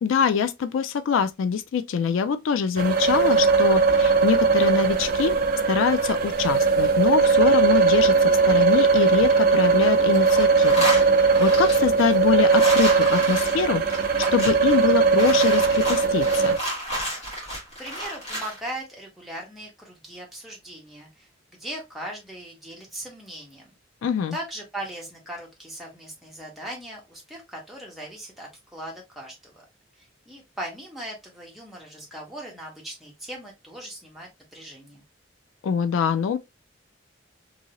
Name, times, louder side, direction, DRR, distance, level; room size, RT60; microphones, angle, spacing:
voice 1, 0.0-5.4 5.7-10.8 11.4-13.8 14.3-16.6 24.0-24.4 35.6-36.4, left 6 dB, 80° left, 0.3 m, -24 dB
sound 1, 2.8-16.6, right 4 dB, 45° right, 0.4 m, -19 dB
sound 2, 9.3-9.9 10.1-18.6, equal, 35° left, 1.3 m, -31 dB
voice 2, 17.8-21.3 21.6-23.7 24.3-29.6 30.0-35.0, right 1 dB, ahead, 1.0 m, -39 dB
2.7 x 2.7 x 2.8 m
head